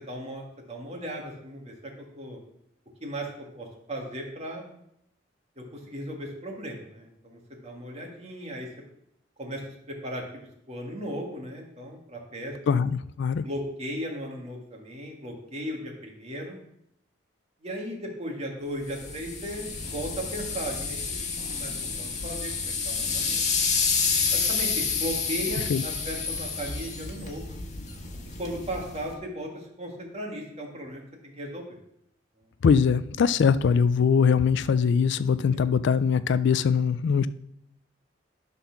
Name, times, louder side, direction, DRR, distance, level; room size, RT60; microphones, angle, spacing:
voice 1, 0.0-1.9 2.2-2.4 3.0-3.3 3.6-4.7 5.6-8.7 9.4-9.6 9.9-12.5 13.4-16.6 17.6-21.2 21.5-21.7 22.0-23.4 24.3-27.4 28.4-31.8 35.5-35.6, equal, 35° right, 0 dB, 1.9 m, -36 dB
voice 2, 12.7-13.4 25.7-25.8 32.6-37.3, left 6 dB, 65° left, 15 dB, 0.4 m, -22 dB
sound 1, 18.9-29.1, left 5 dB, 40° left, 1.4 m, -29 dB
11.5 x 4.2 x 5.8 m, 0.76 s
head